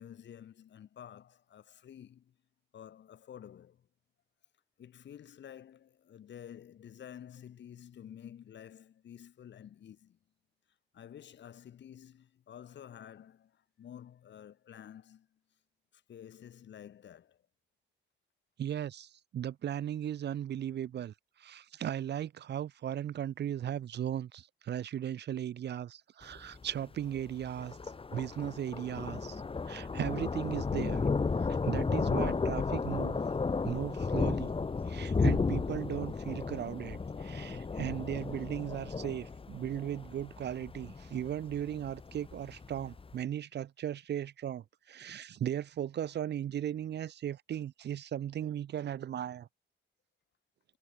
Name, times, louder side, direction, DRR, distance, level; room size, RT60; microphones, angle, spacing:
voice 1, 0.0-2.4 2.7-3.9 4.8-10.2 10.9-15.4 15.9-17.4, left 9 dB, 65° left, 7.5 m, -51 dB
voice 2, 18.6-27.8 28.1-29.4 29.7-31.0 31.3-33.2 33.6-34.5 34.8-49.5, right 10 dB, 60° right, 1.0 m, -37 dB
Thunder, 26.2-43.1, left 4 dB, 25° left, 1.9 m, -34 dB
cardioid pair, 90°, 20 cm